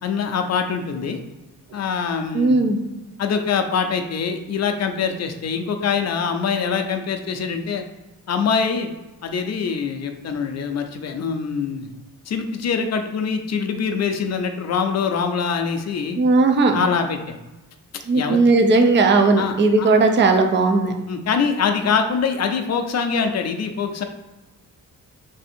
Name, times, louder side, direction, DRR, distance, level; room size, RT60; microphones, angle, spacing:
voice 1, 0.0-1.2 1.7-2.6 3.2-7.8 8.3-8.9 9.2-11.9 12.3-16.2 16.7-17.4 18.1-18.4 19.4-19.9 21.1-24.0, left 6 dB, 45° left, 5 dB, 0.5 m, -24 dB
voice 2, 2.3-2.8 16.2-16.8 18.1-20.9, right 3 dB, 30° right, 6 dB, 0.5 m, -17 dB
3.4 x 2.7 x 4.2 m, 1.1 s
cardioid pair, 140°, 36 cm